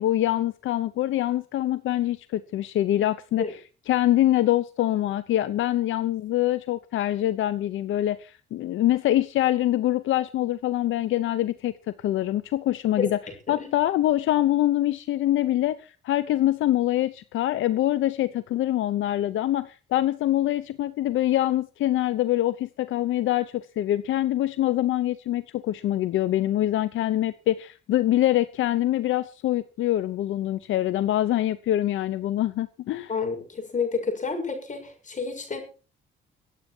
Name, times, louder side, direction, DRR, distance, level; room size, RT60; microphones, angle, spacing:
voice 1, 0.0-3.4 3.9-13.2 13.5-33.1, left 13 dB, 80° left, 15 dB, 0.8 m, -24 dB
voice 2, 33.1-35.6, left 5 dB, 40° left, 5 dB, 6.8 m, -30 dB
24.5 x 8.5 x 4.6 m, 0.35 s
cardioid pair, 90°, 20 cm